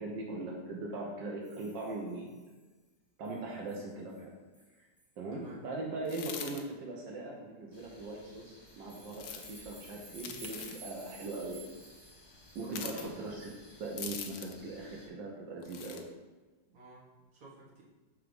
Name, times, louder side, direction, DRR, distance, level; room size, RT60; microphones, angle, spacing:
voice 1, 0.0-2.3 3.2-4.3 4.8-4.9 5.2-11.6 12.5-13.5 13.8-16.0, right 2 dB, 85° right, -1 dB, 1.6 m, -40 dB
sound 1, 1.4-2.6 3.2-3.4 3.7-3.9 4.1-4.2 4.5-4.7 5.0-5.1 8.7-14.1, right 1 dB, ahead, 2.1 m, -55 dB
voice 2, 5.3-5.6 12.6-13.3 16.7-17.8, right 2 dB, 50° right, -5 dB, 2.0 m, -51 dB
sound 2, 6.0-6.6 9.1-9.6 10.2-10.8 12.7-13.1 14.0-14.6 15.6-16.0, left 7 dB, 65° left, 1.1 m, -42 dB
sound 3, 7.7-15.1, left 1 dB, 30° left, 0.5 m, -58 dB
6.5 x 3.6 x 5.2 m, 1.2 s
omnidirectional pair, 1.9 m